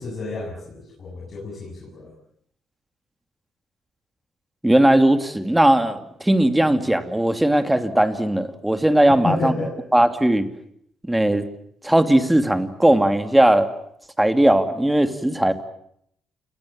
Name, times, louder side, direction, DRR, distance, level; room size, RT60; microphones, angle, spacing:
voice 1, 0.0-2.1 9.1-9.7, left 3 dB, 40° left, -2 dB, 7.6 m, -30 dB
voice 2, 4.6-9.5 9.9-10.5 11.1-11.5 11.8-13.7 14.2-15.5, right 1 dB, 10° right, 9 dB, 2.6 m, -18 dB
29.0 x 19.5 x 8.9 m, 0.71 s
cardioid pair, 90°, 0 cm